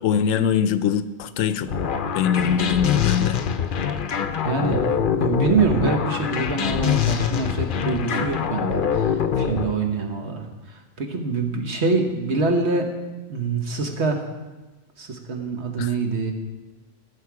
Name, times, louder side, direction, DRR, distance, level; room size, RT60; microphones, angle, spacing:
voice 1, 0.0-1.7 2.1-3.4 15.8-15.9, left 8 dB, 90° left, 13 dB, 1.0 m, -22 dB
sound 1, 1.7-9.7, left 8 dB, 55° left, 0.7 m, -24 dB
voice 2, 4.4-4.8 5.2-12.9 13.3-14.2 15.0-16.3, right 4 dB, 60° right, 3 dB, 1.6 m, -25 dB
14.5 x 6.8 x 4.8 m, 1.2 s
omnidirectional pair, 1.3 m